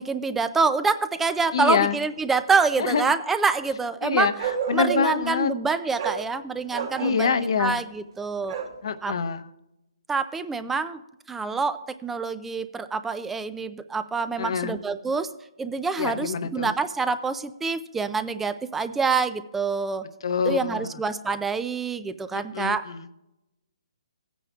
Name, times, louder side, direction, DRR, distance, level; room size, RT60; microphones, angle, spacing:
voice 1, 0.0-4.3 4.7-7.3 7.6-8.6 9.0-9.1 10.1-11.0 11.3-15.3 15.6-20.0 20.5-22.9, right 4 dB, 5° right, 12 dB, 0.3 m, -26 dB
voice 2, 1.5-2.0 2.8-3.1 4.0-5.5 7.0-7.8 8.8-9.5 14.4-14.8 16.0-16.7 20.2-20.9 22.3-23.1, left 6 dB, 60° left, 10 dB, 0.8 m, -26 dB
Bark, 4.4-5.3 6.0-6.2 6.7-7.4 8.5-8.8, right 7 dB, 50° right, 2.5 m, -30 dB
18.0 x 9.1 x 2.4 m, 0.90 s
hypercardioid pair, 160°, 3 cm